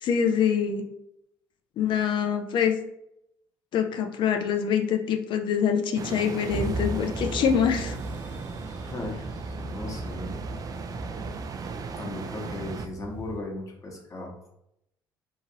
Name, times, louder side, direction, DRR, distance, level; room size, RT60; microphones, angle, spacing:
voice 1, 0.0-0.8 1.8-2.7 3.7-8.0, left 7 dB, 60° left, 5 dB, 0.4 m, -25 dB
sound 1, 6.0-12.9, right 5 dB, 40° right, 0.3 m, -37 dB
sound 2, 6.5-13.4, equal, 20° right, 0.9 m, -37 dB
voice 2, 8.6-10.4 12.0-14.3, left 2 dB, 35° left, 0 dB, 1.1 m, -37 dB
2.9 x 2.5 x 2.8 m, 0.80 s
hypercardioid pair, 65°, 9 cm